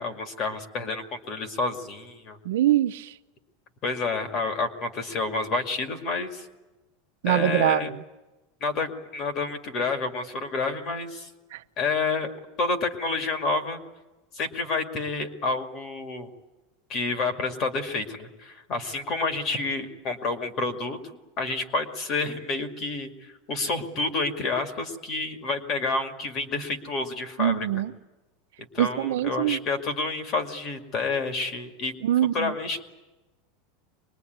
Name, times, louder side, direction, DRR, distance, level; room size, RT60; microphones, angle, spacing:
voice 1, 0.0-2.4 3.8-6.5 7.3-7.9 8.6-11.3 11.8-12.3 12.6-13.8 14.4-16.3 16.9-21.0 21.4-27.7 28.7-31.9 32.3-32.8, left 3 dB, 30° left, 2.2 m, -29 dB
voice 2, 2.4-3.2 7.2-8.0 11.5-11.6 27.4-27.9 28.8-29.6 32.0-32.6, right 13 dB, 85° right, 0.9 m, -24 dB
24.5 x 21.0 x 9.4 m
supercardioid pair, 175°, 0 cm